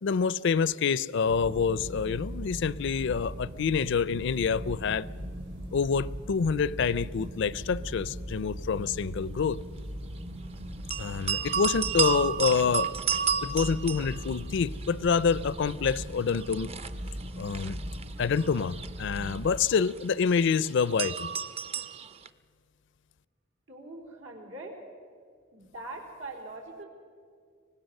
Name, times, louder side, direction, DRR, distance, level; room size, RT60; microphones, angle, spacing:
voice 1, 0.0-5.1 5.7-9.6 11.0-13.0 13.4-16.7 17.4-17.8 18.2-21.3, left 6 dB, 65° left, 0.4 m, -27 dB
sound 1, 1.2-19.6, equal, 75° right, 4.3 m, -39 dB
sound 2, 10.9-14.9 15.2-22.3, right 7 dB, 30° right, 0.5 m, -32 dB
voice 2, 23.7-24.7 25.5-26.9, right 2 dB, 90° right, 4.1 m, -42 dB
24.5 x 19.0 x 6.6 m
head